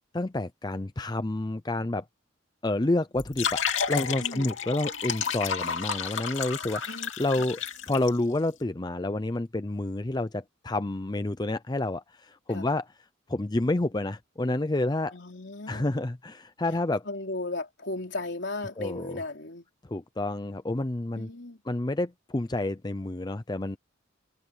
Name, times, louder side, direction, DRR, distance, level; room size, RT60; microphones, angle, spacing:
voice 1, 0.1-2.0 2.6-7.6 7.9-12.8 13.3-15.1 15.7-17.0 18.8-19.2 19.9-21.3 21.7-23.8, left 2 dB, 20° left, 0.5 m, -29 dB
sound 1, 3.1-8.1, left 7 dB, 80° left, 2.7 m, -31 dB
voice 2, 4.2-4.5 6.9-7.1 12.5-12.7 15.1-15.9 17.1-19.7 21.1-21.6, left 2 dB, 60° left, 3.6 m, -36 dB
head